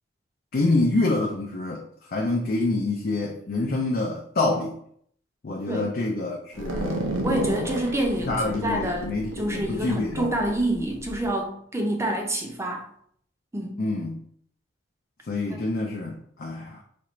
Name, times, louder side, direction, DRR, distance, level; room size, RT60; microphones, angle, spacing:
voice 1, 0.5-1.8 2.1-4.8 5.4-7.1 8.3-10.3 13.8-14.2 15.3-16.8, left 2 dB, 50° left, -1 dB, 0.5 m, -26 dB
sound 1, 6.5-11.2, right 1 dB, 85° right, 0.7 m, -32 dB
voice 2, 7.2-12.8 13.5-13.8 15.5-15.6, right 1 dB, 15° right, 1 dB, 0.6 m, -27 dB
4.2 x 2.4 x 3.0 m, 0.65 s
head